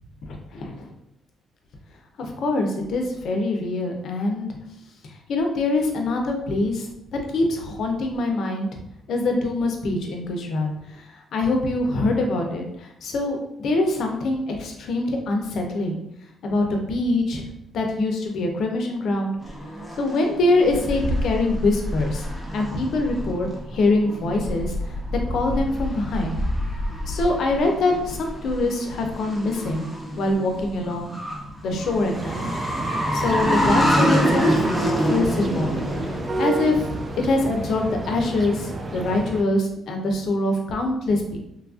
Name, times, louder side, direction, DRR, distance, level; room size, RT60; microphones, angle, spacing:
voice 1, 2.2-4.5 5.3-6.9 7.3-8.7 9.1-16.0 16.4-17.5 17.7-19.3 20.0-22.2 22.5-24.7 25.3-26.3 27.0-29.9 30.2-31.2 31.6-34.7 35.1-35.8 36.4-36.9 37.2-41.4, left 2 dB, 70° left, 3 dB, 0.5 m, -24 dB
sound 1, 19.4-37.5, equal, 5° right, 0.8 m, -27 dB
sound 2, 32.1-39.4, right 2 dB, 35° right, 0.3 m, -31 dB
3.0 x 2.4 x 2.4 m, 0.80 s
cardioid pair, 90°, 0 cm